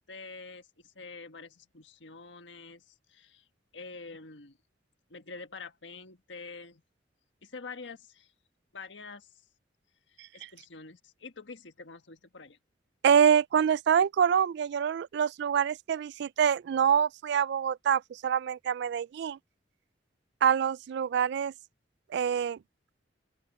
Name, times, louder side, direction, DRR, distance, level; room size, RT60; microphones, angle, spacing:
voice 1, 0.0-3.5 3.7-4.6 5.1-6.8 7.4-8.3 8.7-9.3 10.1-12.6, left 4 dB, 80° left, 1.5 m, -46 dB
voice 2, 13.0-19.4 20.4-21.5 22.1-22.6, right 8 dB, 65° right, 0.3 m, -25 dB
open air
head